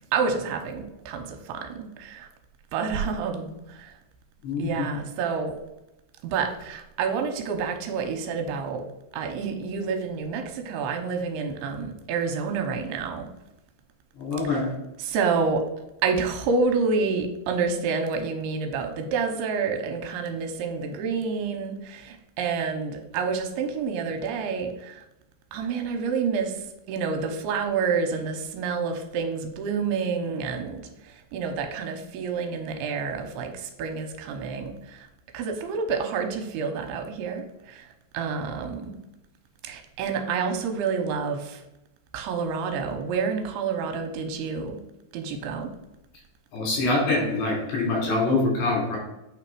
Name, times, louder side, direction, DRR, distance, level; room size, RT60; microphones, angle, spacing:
voice 1, 0.1-2.3 2.7-4.0 4.6-5.5 6.2-8.9 9.1-13.3 15.0-15.7 16.0-25.0 25.5-35.1 35.3-38.9 39.6-41.6 42.1-44.8 45.1-45.7, right 5 dB, 85° right, 4 dB, 2.7 m, -28 dB
voice 2, 4.4-4.9 14.1-14.7 46.5-49.0, left 2 dB, 80° left, -3 dB, 5.0 m, -25 dB
8.8 x 3.4 x 4.7 m, 0.91 s
omnidirectional pair, 4.7 m